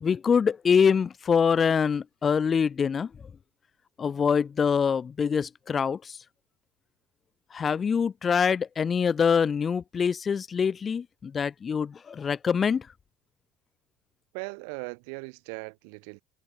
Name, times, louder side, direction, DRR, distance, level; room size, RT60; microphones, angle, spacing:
voice 1, 0.0-3.1 4.0-6.2 7.5-12.9, left 6 dB, 20° left, 1.7 m, -24 dB
voice 2, 14.3-16.2, right 38 dB, 75° right, 5.7 m, -39 dB
cardioid pair, 165°, 0 cm